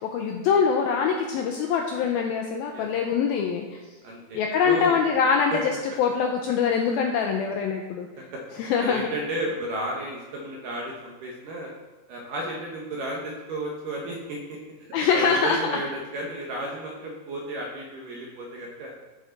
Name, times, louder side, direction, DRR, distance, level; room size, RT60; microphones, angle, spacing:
voice 1, 0.0-3.7 4.3-8.1 8.6-9.1 14.9-15.8, left 6 dB, 90° left, 2 dB, 2.1 m, -24 dB
voice 2, 4.0-5.0 5.5-5.6 8.8-11.7 12.1-14.4 15.1-18.9, right 1 dB, 70° right, -1 dB, 2.2 m, -33 dB
13.0 x 6.6 x 4.0 m, 1.2 s
omnidirectional pair, 5.0 m